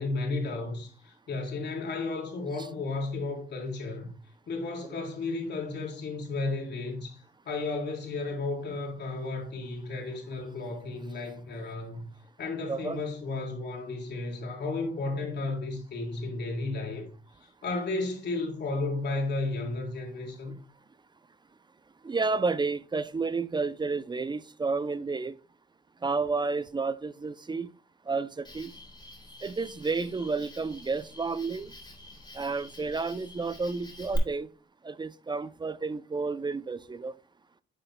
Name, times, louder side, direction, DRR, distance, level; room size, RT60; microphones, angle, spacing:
voice 1, 0.0-4.2 4.5-12.1 12.4-17.1 17.4-20.5, left 3 dB, 60° left, 3.9 m, -33 dB
voice 2, 12.7-13.0 22.0-25.4 26.0-27.7 28.1-28.7 29.4-31.7 32.3-34.5 34.8-37.1, right 4 dB, 20° right, 0.5 m, -31 dB
Cricket, 28.4-34.2, left 2 dB, 20° left, 3.6 m, -45 dB
11.0 x 6.6 x 2.2 m
cardioid pair, 90°, 20 cm